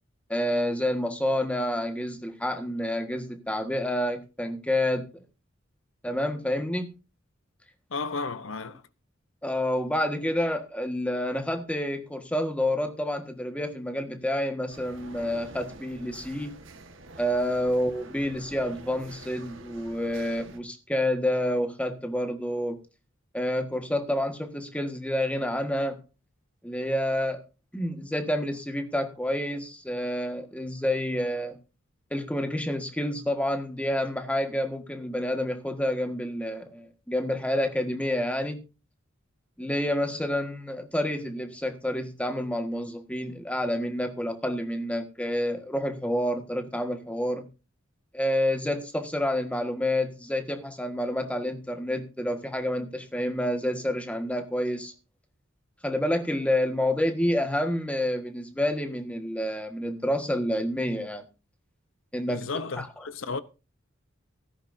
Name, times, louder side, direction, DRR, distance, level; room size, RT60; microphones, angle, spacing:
voice 1, 0.3-5.1 6.0-6.9 9.4-16.5 17.2-22.8 23.3-26.0 26.6-27.4 27.7-31.6 32.1-38.6 39.6-47.5 48.1-54.9 55.8-61.2 62.1-62.4 62.8-62.9, left 1 dB, 5° left, 1.5 m, -28 dB
voice 2, 7.9-8.8 39.9-40.2 62.3-63.4, left 4 dB, 75° left, 0.8 m, -34 dB
sound 1, 14.7-20.6, right 2 dB, 70° right, 1.6 m, -47 dB
16.0 x 14.0 x 2.7 m
head